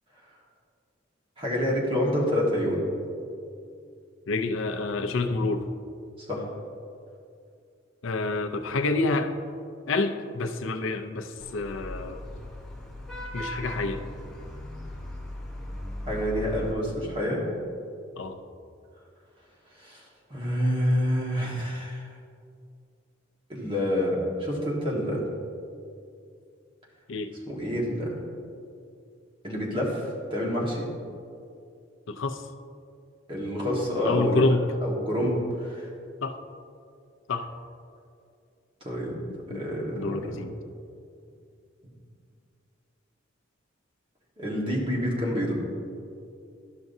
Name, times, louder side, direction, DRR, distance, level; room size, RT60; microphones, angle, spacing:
voice 1, 1.4-2.8 6.2-6.4 16.0-17.4 19.7-20.0 20.3-22.1 23.5-25.2 27.5-28.1 29.4-30.8 33.3-34.5 34.8-35.9 38.8-39.1 39.5-40.4 44.4-45.6, equal, 25° right, -3 dB, 1.5 m, -27 dB
voice 2, 4.3-5.7 8.0-9.3 9.9-12.3 13.3-14.0 18.2-18.4 27.1-27.3 32.1-32.4 34.0-34.6 36.2-36.4 37.3-37.5 39.5-39.6 39.9-40.5, left 3 dB, 90° left, 7 dB, 0.5 m, -28 dB
Vehicle horn car horn honking / Traffic noise roadway noise, 11.4-16.7, left 1 dB, 5° left, 0.8 m, -38 dB
12.0 x 6.0 x 2.7 m, 2.4 s
head